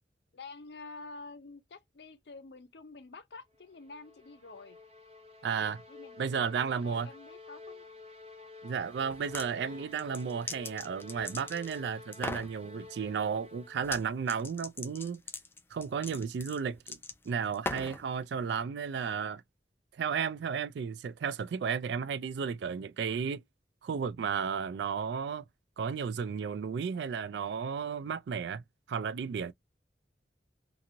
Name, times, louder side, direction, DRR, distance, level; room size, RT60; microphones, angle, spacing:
voice 1, 0.3-4.8 5.9-7.8 9.6-9.9, left 3 dB, 70° left, 0.6 m, -49 dB
sound 1, 3.6-14.1, left 3 dB, 35° right, 0.9 m, -51 dB
voice 2, 5.4-5.8 6.2-7.1 8.6-15.2 15.7-17.0 17.3-19.4 19.9-23.4 23.8-25.4 25.8-28.6 28.9-29.5, right 6 dB, 75° right, 0.3 m, -33 dB
sound 2, 9.1-9.5 10.0-11.8 12.1-12.5 13.8-14.0 14.3-18.0, left 3 dB, 15° left, 0.4 m, -40 dB
2.9 x 2.6 x 2.5 m
head